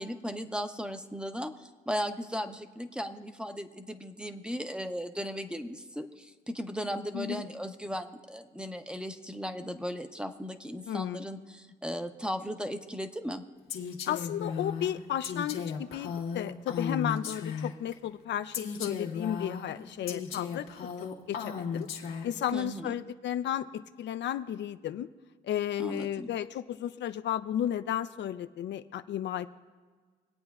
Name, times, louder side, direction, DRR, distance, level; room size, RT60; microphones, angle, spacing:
voice 1, 0.0-13.4 22.5-22.9 25.8-26.3, equal, 5° right, 8 dB, 0.7 m, -36 dB
voice 2, 10.9-11.2 14.1-20.7 21.3-21.9 22.2-25.1 25.4-29.5, left 10 dB, 65° left, 11 dB, 0.5 m, -33 dB
Female speech woman speaking, 13.7-17.9 18.5-22.5, left 6 dB, 85° left, 1.5 m, -36 dB
24.5 x 8.6 x 2.4 m, 1.5 s
cardioid pair, 90°, 20 cm